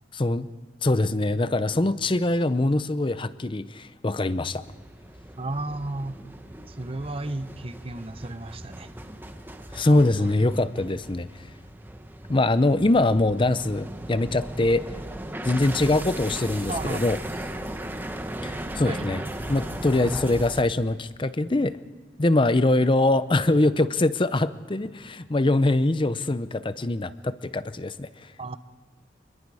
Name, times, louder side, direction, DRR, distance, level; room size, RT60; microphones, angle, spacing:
voice 1, 0.1-0.5 0.8-4.6 9.7-11.3 12.3-14.9 15.4-17.2 18.4-19.2 19.5-21.8 22.2-28.1, left 2 dB, 30° left, 14 dB, 0.7 m, -23 dB
sound 1, 4.6-20.6, right 1 dB, 10° right, 1.2 m, -37 dB
voice 2, 5.4-6.2 6.7-8.9 9.8-10.3 16.7-17.4 18.8-19.0 28.4-28.6, right 2 dB, 30° right, 11 dB, 0.9 m, -34 dB
27.0 x 21.5 x 4.9 m, 1.5 s
head